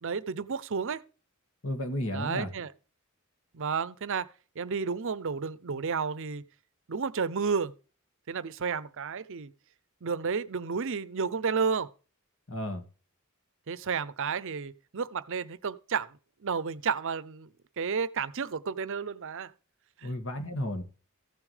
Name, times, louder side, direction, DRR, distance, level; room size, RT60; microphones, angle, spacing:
voice 1, 0.0-1.0 2.1-2.7 3.5-4.3 4.6-6.4 6.9-7.7 8.3-9.5 10.0-11.9 13.7-16.1 16.4-17.5 17.8-19.5 20.0-20.1, right 5 dB, 60° right, 0.6 m, -31 dB
voice 2, 1.6-2.5 12.5-12.8 20.0-20.8, left 1 dB, 60° left, 1.9 m, -33 dB
15.0 x 7.2 x 3.3 m
head